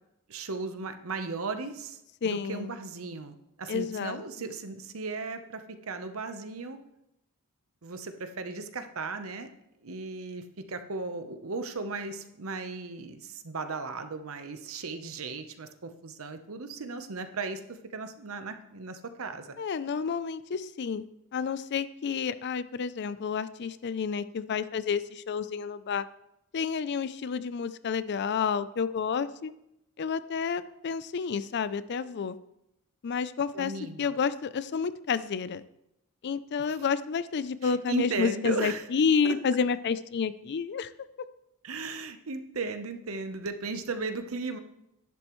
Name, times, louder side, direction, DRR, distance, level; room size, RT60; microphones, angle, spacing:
voice 1, 0.3-2.0 2.2-6.8 7.8-9.5 9.8-19.6 33.5-34.2 36.7-36.8 37.6-38.8 41.6-44.6, right 4 dB, 70° right, 8 dB, 0.9 m, -36 dB
voice 2, 2.2-2.7 3.7-4.2 19.6-21.0 21.3-26.1 26.5-29.5 30.0-32.4 33.0-33.7 34.0-35.6 36.2-40.9, left 6 dB, 50° left, 15 dB, 0.4 m, -30 dB
11.0 x 10.5 x 3.1 m, 0.84 s
head